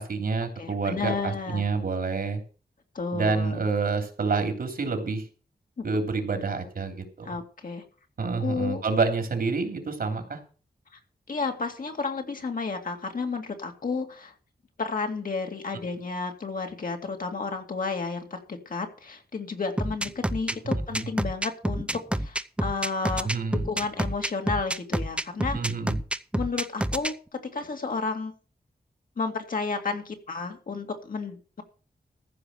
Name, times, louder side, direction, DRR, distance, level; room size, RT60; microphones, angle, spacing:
voice 1, 0.0-2.4 3.1-5.2 5.8-7.3 8.2-10.4 23.2-23.6 25.5-25.9, right 4 dB, 70° right, 6 dB, 3.3 m, -28 dB
voice 2, 0.6-1.6 2.9-3.6 5.8-5.9 7.2-7.8 8.4-8.8 11.3-14.3 14.8-21.9 22.1-25.6 26.3-27.1 27.5-28.3 29.2-31.6, left 4 dB, 60° left, 3 dB, 2.4 m, -32 dB
sound 1, 19.8-27.1, right 1 dB, 5° right, 0.6 m, -28 dB
14.5 x 5.2 x 7.8 m, 0.38 s
wide cardioid pair, 120°, 16 cm